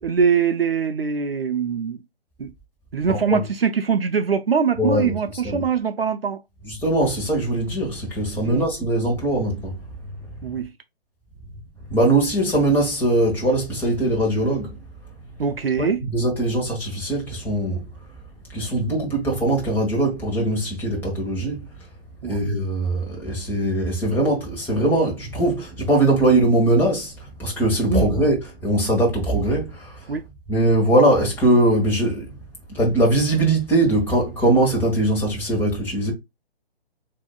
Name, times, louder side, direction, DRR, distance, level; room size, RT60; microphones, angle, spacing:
voice 1, 0.0-2.0 2.4-2.5 2.9-6.4 8.4-8.7 10.4-10.7 15.4-16.0 22.2-22.4 27.9-28.1 30.1-30.2, right 6 dB, 65° right, 0.7 m, -22 dB
voice 2, 3.1-3.4 4.8-5.2 5.4-5.6 6.6-9.8 11.9-14.7 15.8-17.8 18.5-21.6 22.2-27.1 27.4-30.1 30.5-32.3 32.7-36.1, right 1 dB, 5° left, 1.5 m, -21 dB
6.9 x 2.9 x 2.3 m
figure-of-eight pair, 135°, 31 cm